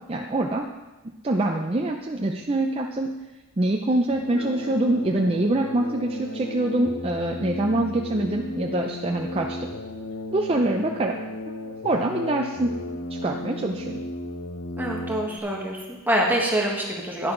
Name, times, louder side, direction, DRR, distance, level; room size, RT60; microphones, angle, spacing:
voice 1, 0.1-0.7 1.2-3.1 3.6-9.7 10.3-11.2 11.6-12.7 13.2-14.0, right 2 dB, 25° right, 1 dB, 0.5 m, -25 dB
sound 1, 4.1-15.4, left 1 dB, 80° left, 1.1 m, -35 dB
voice 2, 14.8-17.3, right 1 dB, 10° right, -2 dB, 1.4 m, -25 dB
10.5 x 10.5 x 3.9 m, 1.1 s
head